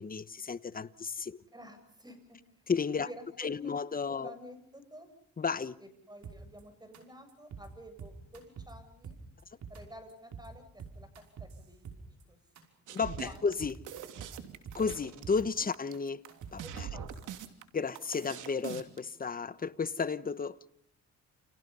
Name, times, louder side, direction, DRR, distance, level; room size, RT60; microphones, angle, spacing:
voice 1, 0.0-1.4 2.7-3.1 3.4-4.3 5.4-5.8 12.9-13.8 14.7-16.2 16.5-16.9 17.7-20.6, left 5 dB, 30° left, 1.1 m, -33 dB
voice 2, 1.5-2.4 3.0-3.8 4.2-5.1 5.8-9.2 9.7-11.1 11.4-12.4 13.1-13.4 16.6-17.3, equal, 15° right, 8.0 m, -51 dB
sound 1, 6.2-6.6 6.9-7.0 7.3-7.7 8.0-8.7 9.0-9.8 10.1-10.5 10.8-12.2 12.5-12.6 12.9-13.3 13.6-14.3 14.6-15.4 15.7-17.3, right 6 dB, 65° right, 5.6 m, -46 dB
sound 2, 12.9-19.0, right 9 dB, 85° right, 2.9 m, -43 dB
29.5 x 28.5 x 5.6 m
cardioid pair, 90°, 30 cm